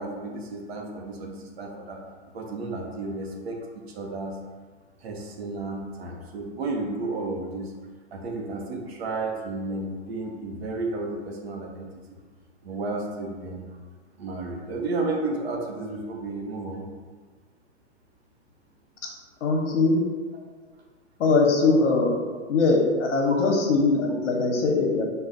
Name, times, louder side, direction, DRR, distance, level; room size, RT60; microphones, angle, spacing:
voice 1, 0.0-2.0 2.3-4.4 5.0-7.7 8.1-11.9 12.6-13.6 14.2-16.8 23.2-23.4, right 2 dB, 60° right, 1 dB, 0.8 m, -32 dB
voice 2, 19.4-20.0 21.2-22.2 22.5-25.0, left 3 dB, 80° left, 1 dB, 0.9 m, -21 dB
5.5 x 2.2 x 2.5 m, 1.5 s
hypercardioid pair, 170°, 36 cm